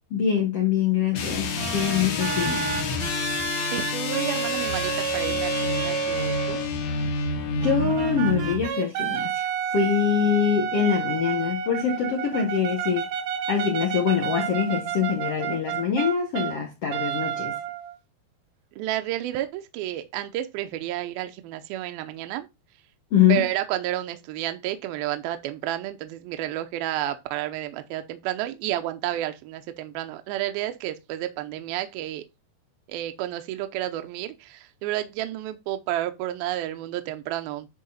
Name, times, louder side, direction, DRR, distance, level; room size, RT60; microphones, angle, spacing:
voice 1, 0.1-2.7 7.6-9.5 9.7-13.1 13.5-17.5 23.1-23.4, left 7 dB, 75° left, 1.4 m, -24 dB
sound 1, 1.1-8.7, left 3 dB, 60° left, 1.7 m, -29 dB
sound 2, 1.6-6.7 7.6-16.6 16.9-18.0, right 7 dB, 65° right, 1.8 m, -30 dB
voice 2, 3.7-6.6 18.8-22.5 23.3-32.2 32.9-37.7, right 13 dB, 80° right, 2.3 m, -31 dB
10.5 x 4.0 x 4.2 m
omnidirectional pair, 4.9 m